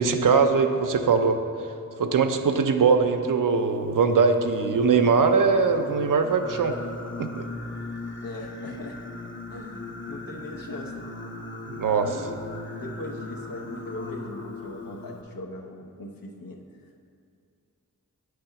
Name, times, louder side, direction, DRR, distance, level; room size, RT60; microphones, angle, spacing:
voice 1, 0.0-1.4 2.0-6.8 7.2-7.5 11.7-12.1, right 5 dB, 70° right, 7 dB, 0.5 m, -21 dB
Singing, 4.5-15.2, left 2 dB, 35° left, 0.7 m, -38 dB
voice 2, 8.2-9.0 9.5-10.9 11.8-12.3 12.6-16.6, left 1 dB, 80° left, 1 dB, 0.8 m, -39 dB
8.8 x 3.5 x 5.7 m, 2.4 s
wide cardioid pair, 65°, 34 cm